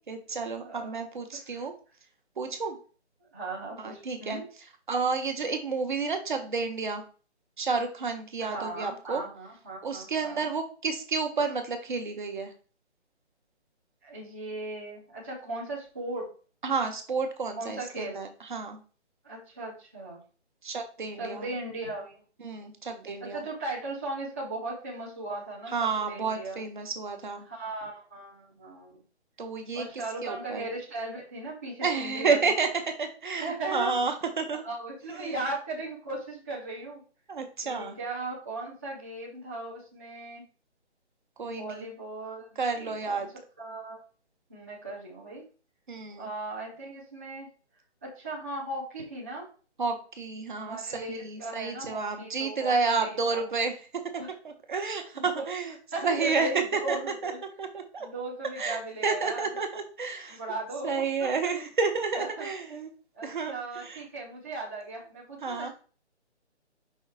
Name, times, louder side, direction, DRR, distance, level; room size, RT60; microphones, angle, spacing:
voice 1, 0.1-1.7 2.4-2.8 3.8-4.4 4.9-7.0 7.6-9.2 9.8-12.5 16.6-18.8 20.6-21.5 22.4-23.4 25.7-27.5 29.4-29.8 30.2-30.7 31.8-32.7 33.0-34.6 35.1-35.3 37.3-38.0 41.4-41.8 42.6-43.3 45.9-46.3 49.8-53.8 54.4-55.7 56.0-56.6 56.9-57.0 57.2-57.3 57.6-58.1 58.6-60.4 60.8-62.9 63.2-63.5 63.8-64.0 65.4-65.7, right 4 dB, 45° right, 5 dB, 1.2 m, -30 dB
voice 2, 0.6-1.0 1.3-1.7 3.3-4.4 8.4-10.5 14.0-16.3 17.6-18.2 19.2-20.2 21.2-22.2 23.2-26.6 27.4-29.0 29.7-32.5 33.4-34.0 34.6-37.0 37.6-40.4 41.5-43.3 43.6-44.0 44.5-45.5 46.2-47.5 48.0-49.5 50.6-52.7 53.0-53.5 54.2-54.3 55.1-55.4 55.9-57.4 58.0-59.4 60.3-60.9 61.2-61.3 62.2-62.5 63.1-65.7, right 2 dB, 15° right, -8 dB, 0.7 m, -37 dB
5.6 x 3.6 x 4.7 m, 0.38 s
hypercardioid pair, 170°, 35 cm